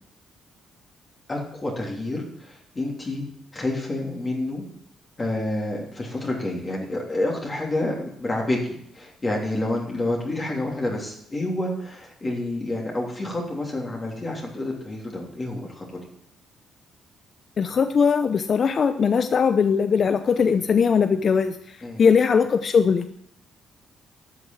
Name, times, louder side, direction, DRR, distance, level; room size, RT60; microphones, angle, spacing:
voice 1, 1.3-3.2 3.5-4.6 5.2-15.8 21.8-22.0, left 1 dB, 30° left, -2 dB, 3.2 m, -28 dB
voice 2, 17.6-23.1, left 6 dB, 50° left, 9 dB, 0.7 m, -20 dB
12.0 x 6.6 x 7.8 m, 0.72 s
cardioid pair, 90°, 0 cm